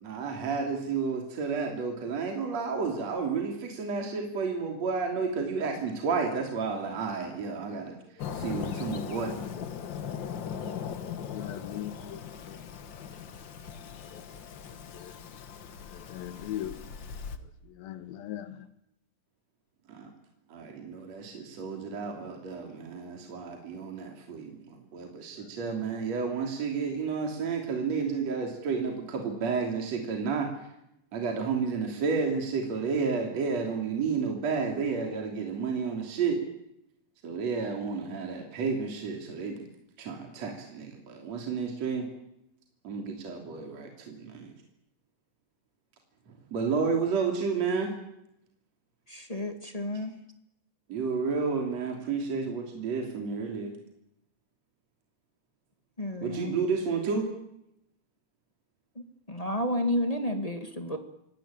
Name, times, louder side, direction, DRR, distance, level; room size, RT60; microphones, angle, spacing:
voice 1, 0.0-7.9 8.4-9.4 19.9-20.1 20.5-24.5 24.9-30.5 31.1-36.4 37.2-39.7 40.0-42.1 42.8-44.5 46.5-47.9 50.9-53.7 56.2-57.3, right 5 dB, 50° right, 4.1 m, -31 dB
Fireworks, 8.2-17.4, left 8 dB, 60° left, 1.2 m, -39 dB
voice 2, 9.6-9.9 11.1-12.2 12.5-12.6 13.0-13.2 13.7-15.2 15.8-16.8 17.4-18.7 25.4-25.9, left 12 dB, 90° left, 3.2 m, -42 dB
voice 3, 49.1-50.2 56.0-56.5 59.3-61.0, left 1 dB, 15° left, 1.2 m, -31 dB
27.0 x 18.0 x 8.8 m
omnidirectional pair, 4.1 m